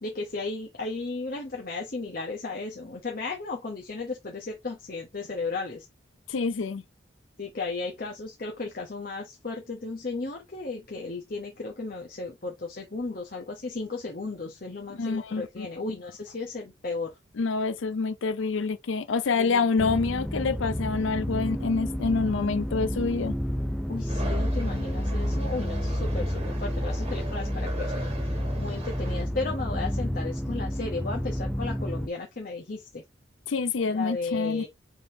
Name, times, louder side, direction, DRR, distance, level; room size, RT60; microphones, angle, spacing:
voice 1, 0.0-5.9 7.4-17.2 19.3-19.7 23.9-33.0 33.9-34.7, left 3 dB, 50° left, 0.9 m, -35 dB
voice 2, 6.3-6.8 15.0-15.9 17.4-23.3 33.5-34.6, left 4 dB, 80° left, 0.5 m, -27 dB
sound 1, 19.8-32.1, equal, ahead, 0.5 m, -30 dB
sound 2, 24.1-29.2, right 2 dB, 30° right, 1.6 m, -40 dB
5.1 x 3.7 x 2.7 m
head